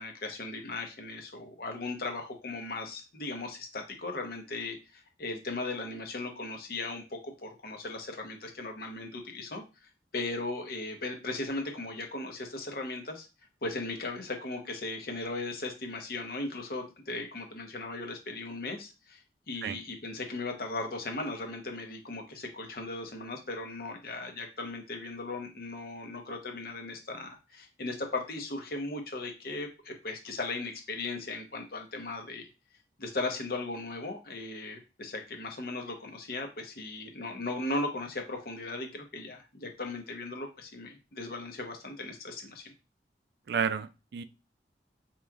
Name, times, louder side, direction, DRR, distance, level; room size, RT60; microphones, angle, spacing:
voice 1, 0.0-9.6 10.1-13.3 13.6-32.4 33.0-42.7, left 2 dB, 55° left, 4 dB, 0.8 m, -37 dB
voice 2, 43.5-44.2, right 6 dB, 60° right, 12 dB, 0.3 m, -31 dB
4.8 x 3.0 x 2.3 m, 0.29 s
head